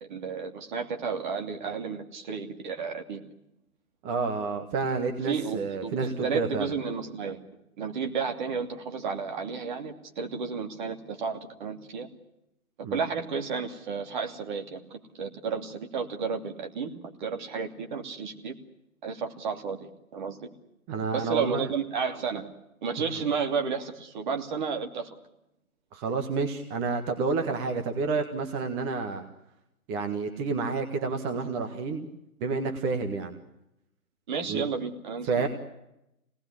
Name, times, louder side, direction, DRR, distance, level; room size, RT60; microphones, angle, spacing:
voice 1, 0.1-3.3 5.2-7.4 7.8-12.1 12.9-16.9 17.2-18.6 19.0-20.5 21.1-22.5 22.8-25.1 34.3-35.5, right 5 dB, 35° right, 5 dB, 2.8 m, -32 dB
voice 2, 4.0-6.7 12.8-13.0 20.9-21.7 23.2-23.3 25.9-29.2 29.9-32.1 32.4-33.3 34.5-34.6 35.3-35.5, right 4 dB, 15° right, 5 dB, 1.6 m, -29 dB
26.5 x 19.0 x 10.0 m, 0.86 s
figure-of-eight pair, 140°, 42 cm